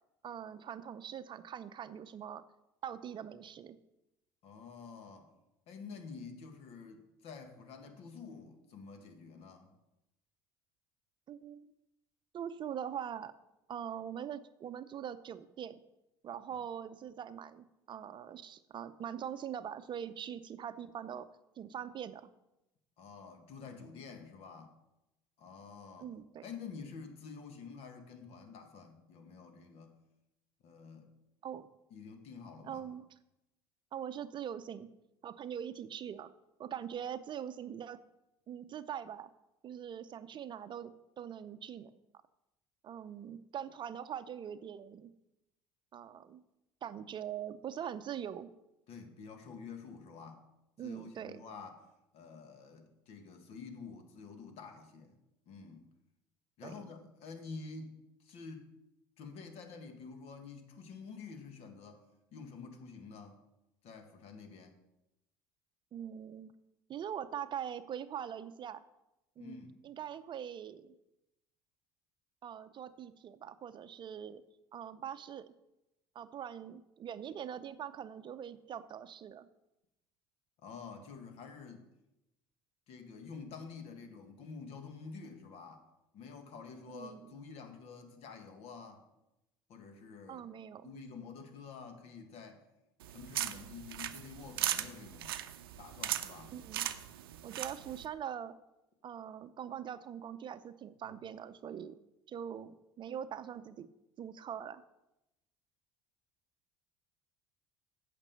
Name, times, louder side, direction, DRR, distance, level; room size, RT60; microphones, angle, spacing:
voice 1, 0.2-2.4 2.8-3.8 11.3-11.7 12.3-13.3 13.7-15.8 16.2-21.3 21.6-22.3 26.0-26.4 31.4-31.7 32.6-33.1 33.9-34.9 35.2-36.3 36.6-38.0 38.5-39.3 39.6-41.9 42.8-45.1 45.9-46.4 46.8-48.5 50.8-51.4 56.6-56.8 65.9-66.5 66.9-68.8 69.4-69.6 69.8-70.9 72.4-74.4 74.7-75.5 76.1-79.5 86.9-87.4 90.3-90.9 96.5-96.9 97.4-98.5 99.0-102.0 102.3-103.9 104.2-104.8, right 9 dB, 40° right, 12 dB, 0.6 m, -43 dB
voice 2, 4.4-5.3 5.7-9.7 16.5-16.6 23.0-24.7 25.4-26.1 26.4-30.0 30.6-31.1 31.9-32.9 48.9-50.5 50.8-51.8 52.1-55.2 55.5-55.8 56.6-57.9 58.2-58.7 59.2-62.0 62.3-63.4 63.8-64.7 69.4-69.8 80.6-81.8 82.9-85.9 86.1-89.1 89.7-90.5 90.8-92.6 93.1-95.4 95.8-96.5 101.1-101.2, left 5 dB, 60° left, 6 dB, 1.6 m, -49 dB
sound 1, 93.0-98.1, right 12 dB, 80° right, 0.5 m, -38 dB
8.9 x 6.0 x 6.9 m, 0.91 s
hypercardioid pair, 65°, 12 cm